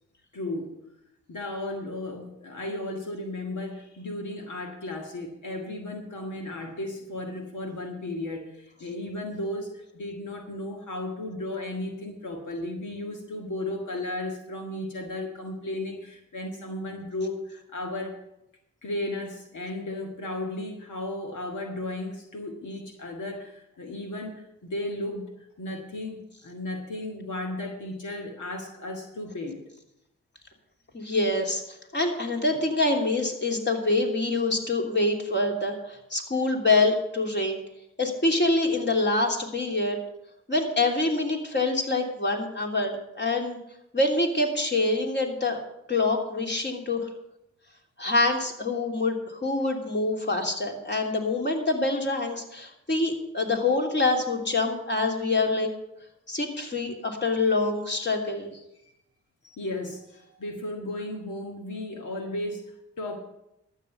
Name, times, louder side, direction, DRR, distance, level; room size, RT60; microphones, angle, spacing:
voice 1, 0.3-0.8 1.3-18.2 18.8-25.3 25.6-29.6 58.8-58.9 59.4-63.2, left 1 dB, 80° left, 2 dB, 1.8 m, -35 dB
voice 2, 30.9-37.6 38.0-40.0 40.5-43.6 43.9-47.1 48.0-55.7 56.3-58.5, left 2 dB, 35° left, 1 dB, 3.1 m, -26 dB
12.0 x 8.3 x 6.8 m, 0.84 s
cardioid pair, 45°, 30 cm